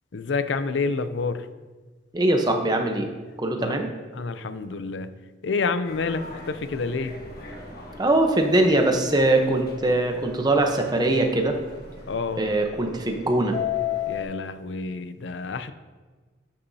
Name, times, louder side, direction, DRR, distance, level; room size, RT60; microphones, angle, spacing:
voice 1, 0.1-1.5 3.6-3.8 4.1-5.1 5.4-7.2 12.1-12.4 14.1-15.7, left 4 dB, 70° left, 11 dB, 0.5 m, -28 dB
voice 2, 2.1-3.1 3.4-3.9 8.0-11.6 12.4-13.6, right 2 dB, 20° right, 3 dB, 0.9 m, -22 dB
Subway metro underground, 5.8-14.2, left 9 dB, 55° left, 1.3 m, -36 dB
11.0 x 6.9 x 2.8 m, 1.4 s
head